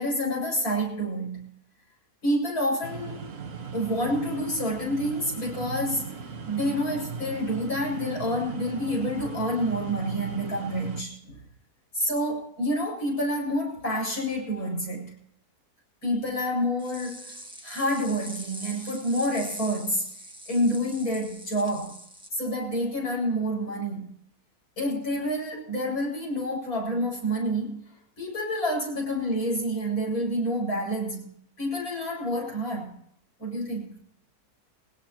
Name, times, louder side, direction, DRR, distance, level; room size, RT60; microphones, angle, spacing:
voice 1, 0.0-1.5 2.2-3.3 3.7-11.4 11.9-15.2 16.0-17.3 17.6-20.1 20.5-22.0 22.3-24.1 24.8-27.9 28.2-31.3 31.6-32.9 33.4-33.9, equal, 70° left, -3 dB, 7.9 m, -28 dB
sound 1, 2.8-11.0, right 5 dB, 55° right, 1.7 m, -38 dB
sound 2, 16.8-22.3, right 1 dB, 5° right, 1.5 m, -43 dB
24.5 x 17.0 x 3.0 m, 0.69 s
omnidirectional pair, 1.6 m